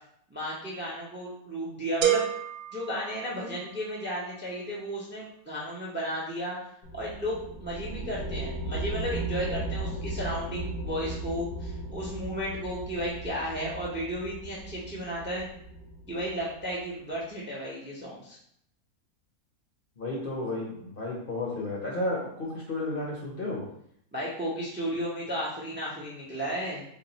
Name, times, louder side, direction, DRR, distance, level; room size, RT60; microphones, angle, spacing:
voice 1, 0.3-2.2 2.7-6.6 6.9-15.5 16.1-18.4 24.1-26.8, equal, 10° right, -5 dB, 0.5 m, -34 dB
sound 1, 2.0-3.9, right 10 dB, 75° right, 1.1 m, -29 dB
sound 2, 6.8-16.8, right 2 dB, 80° left, 1.6 m, -37 dB
voice 2, 20.0-23.6, left 2 dB, 45° left, -4 dB, 0.8 m, -32 dB
3.7 x 2.3 x 3.9 m, 0.70 s
omnidirectional pair, 1.6 m